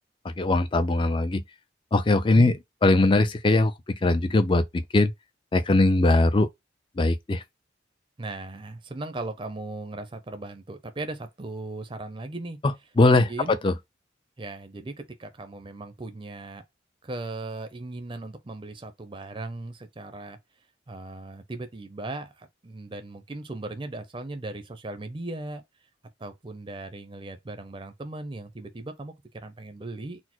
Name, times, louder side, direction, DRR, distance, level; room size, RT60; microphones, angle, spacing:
voice 1, 0.2-1.4 1.9-2.5 2.8-5.1 5.5-6.5 7.0-7.4 13.0-13.7, left 2 dB, 25° left, 0.4 m, -21 dB
voice 2, 8.2-12.6 13.0-13.6 14.4-16.6 17.0-20.4 20.9-25.6 26.2-30.2, right 2 dB, 25° right, 0.5 m, -37 dB
4.1 x 2.0 x 4.3 m
head